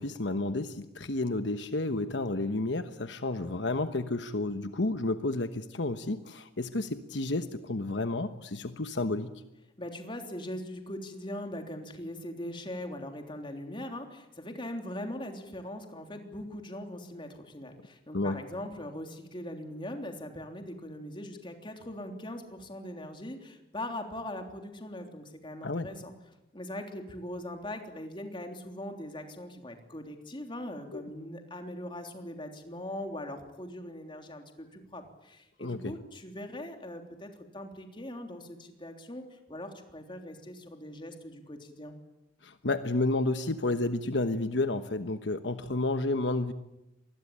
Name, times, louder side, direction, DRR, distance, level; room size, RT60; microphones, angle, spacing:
voice 1, 0.0-9.3 18.1-18.4 25.6-25.9 30.9-31.0 35.6-35.9 42.4-46.5, left 2 dB, 70° left, 9 dB, 1.2 m, -31 dB
voice 2, 9.8-26.1 26.5-41.9, left 1 dB, 25° left, 4 dB, 3.4 m, -41 dB
25.5 x 21.0 x 8.8 m, 0.92 s
head